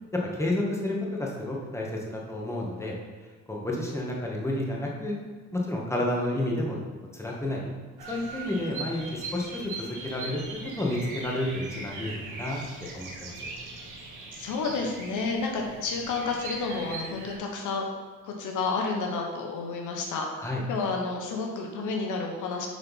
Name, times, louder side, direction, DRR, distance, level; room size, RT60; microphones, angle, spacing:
voice 1, 0.3-2.9 3.5-5.2 5.5-6.8 7.2-7.7 8.1-13.3 20.4-20.6, left 1 dB, 10° left, -2 dB, 1.7 m, -30 dB
Bird vocalization bird call bird song, 8.0-17.4, right 3 dB, 85° right, 1.6 m, -40 dB
voice 2, 14.3-17.8 18.2-20.3 20.7-22.7, left 4 dB, 80° left, 1 dB, 1.3 m, -30 dB
7.9 x 4.2 x 5.5 m, 1.4 s
cardioid pair, 90°, 30 cm